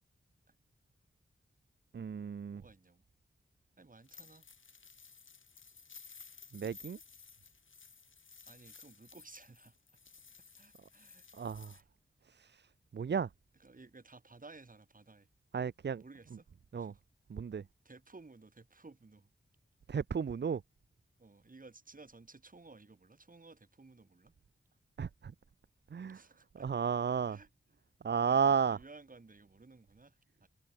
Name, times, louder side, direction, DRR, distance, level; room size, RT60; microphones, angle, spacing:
voice 1, 1.9-2.6 6.5-7.0 11.3-11.7 12.3-12.7 12.9-13.3 15.5-16.0 16.7-16.9 17.3-17.6 19.9-20.6 25.0-25.3 25.9-26.2 26.6-27.4 28.0-28.8, right 6 dB, 60° right, 0.7 m, -33 dB
voice 2, 2.5-3.0 3.8-4.5 8.4-9.8 10.5-11.3 11.7-11.8 13.6-15.3 16.0-16.5 16.7-17.0 17.8-19.3 21.2-24.3 26.1-26.7 27.3-27.5 28.2-30.5, right 3 dB, 45° right, 5.5 m, -56 dB
sound 1, 4.0-11.8, left 5 dB, 85° left, 5.9 m, -56 dB
wide cardioid pair, 85°, 20 cm